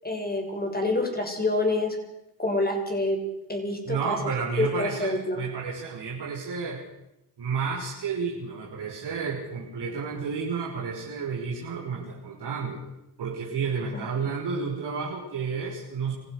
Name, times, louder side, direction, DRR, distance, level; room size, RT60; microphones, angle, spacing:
voice 1, 0.0-2.0 2.4-3.2 3.5-4.2 4.6-5.4 13.9-14.0, left 2 dB, 20° left, 3 dB, 7.4 m, -27 dB
voice 2, 3.9-6.8 7.4-12.8 13.2-16.1, right 5 dB, 60° right, -3 dB, 6.0 m, -31 dB
26.5 x 16.0 x 6.8 m, 0.87 s
hypercardioid pair, 50°, 46 cm